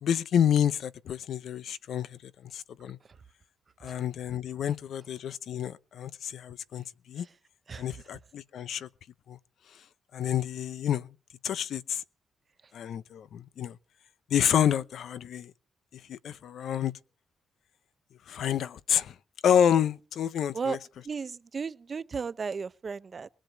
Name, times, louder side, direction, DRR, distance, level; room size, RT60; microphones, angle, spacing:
voice 1, 0.0-3.0 3.8-7.3 7.8-8.9 9.3-9.4 9.7-9.8 10.1-11.1 11.4-12.0 12.7-13.8 14.3-15.5 15.9-16.9 18.3-19.2 19.4-20.8, left 9 dB, 65° left, 0.8 m, -29 dB
voice 2, 21.0-23.3, right 5 dB, 30° right, 0.7 m, -34 dB
21.0 x 7.6 x 8.1 m
cardioid pair, 150°, 0 cm